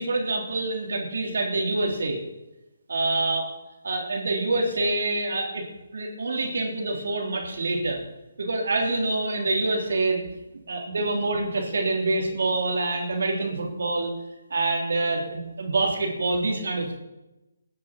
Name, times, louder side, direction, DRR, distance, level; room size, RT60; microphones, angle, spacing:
voice 1, 0.0-2.2 2.9-3.5 3.8-5.6 5.9-8.0 8.4-10.2 10.7-14.1 14.5-17.0, right 2 dB, 65° right, 1 dB, 3.5 m, -26 dB
20.0 x 7.4 x 6.1 m, 1.0 s
figure-of-eight pair, 145°, 0 cm